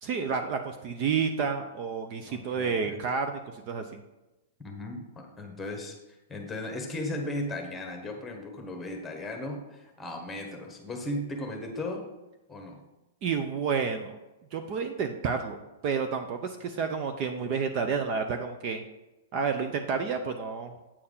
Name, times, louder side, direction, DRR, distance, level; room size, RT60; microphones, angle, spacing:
voice 1, 0.0-4.0 13.2-14.2 14.5-15.6 15.8-18.8 19.3-20.7, right 5 dB, 35° right, 6 dB, 0.6 m, -30 dB
voice 2, 2.2-3.0 4.6-6.0 6.3-12.1 12.5-12.8, left 1 dB, 10° left, 2 dB, 1.3 m, -36 dB
8.6 x 4.6 x 5.5 m, 1.0 s
hypercardioid pair, 160°, 0 cm